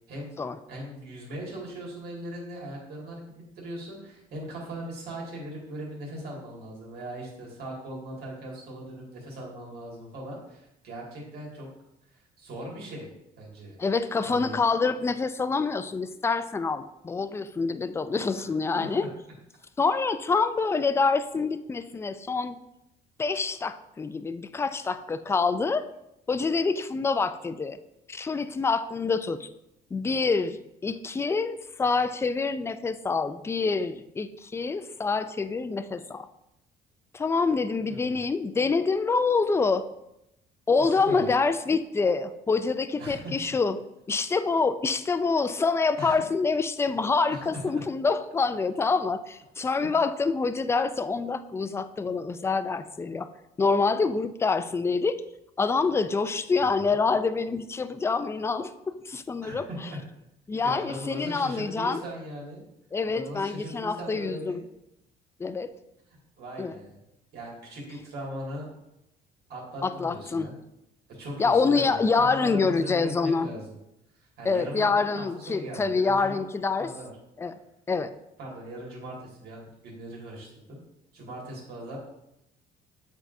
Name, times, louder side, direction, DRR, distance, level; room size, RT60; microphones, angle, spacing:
voice 1, 0.7-3.2 3.6-11.7 12.1-13.1 13.4-13.8 14.2-14.6 18.1-18.5 18.8-18.9 37.9-38.2 40.8-41.3 43.0-43.6 46.0-46.2 47.3-47.8 56.6-57.0 59.4-60.0 60.6-62.6 63.0-64.6 66.4-67.0 67.3-68.6 69.5-70.6 71.1-73.8 74.2-76.4 76.8-77.1 78.4-80.8 81.1-82.0, right 1 dB, 70° right, -3 dB, 2.1 m, -39 dB
voice 2, 13.8-19.1 19.8-22.6 23.2-25.8 26.3-27.8 28.1-29.5 29.9-30.6 30.8-36.3 37.1-39.8 40.7-43.8 44.1-53.3 53.6-55.2 55.6-59.7 60.5-62.0 62.9-64.6 65.4-65.7 66.6-66.8 69.8-70.5 71.4-73.5 74.4-76.9 77.4-77.6 77.9-78.1, left 4 dB, 15° left, 11 dB, 0.3 m, -26 dB
7.8 x 4.6 x 2.6 m, 0.86 s
cardioid pair, 110°, 17 cm